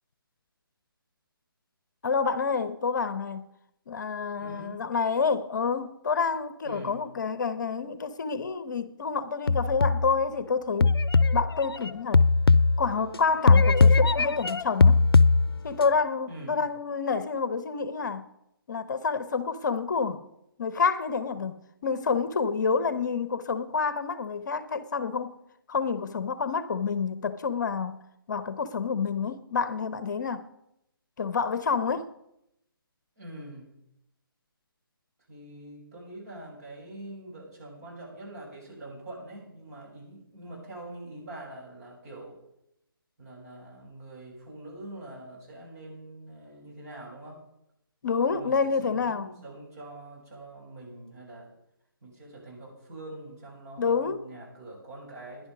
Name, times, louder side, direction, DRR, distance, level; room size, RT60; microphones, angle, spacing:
voice 1, 2.0-3.4 3.9-11.0 11.3-12.2 12.8-15.1 15.6-18.2 18.7-20.2 20.6-21.6 21.8-25.4 25.7-28.0 28.3-30.5 31.2-32.1 48.0-49.3 53.8-54.2, left 5 dB, 50° left, 0.8 m, -28 dB
voice 2, 4.4-4.9 6.6-7.0 16.3-16.6 33.2-33.7 35.3-42.4 43.2-47.4 48.3-51.5 52.0-55.5, right 1 dB, 40° right, 6.7 m, -44 dB
sound 1, 9.5-10.2 10.8-13.2 13.5-15.8, left 3 dB, 85° left, 0.5 m, -20 dB
15.5 x 10.5 x 5.1 m
figure-of-eight pair, 145°, 12 cm